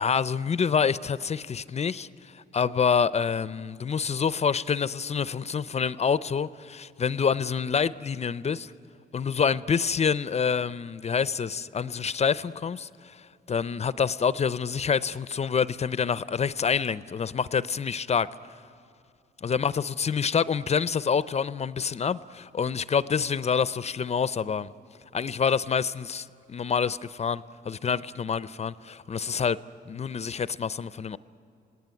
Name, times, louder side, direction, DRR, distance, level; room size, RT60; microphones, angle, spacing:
voice 1, 0.0-2.1 2.3-8.7 9.1-13.2 13.5-18.3 19.4-24.7 25.1-29.6 29.9-31.2, left 6 dB, 35° left, 0.5 m, -27 dB
26.5 x 18.0 x 9.6 m
cardioid pair, 90°, 20 cm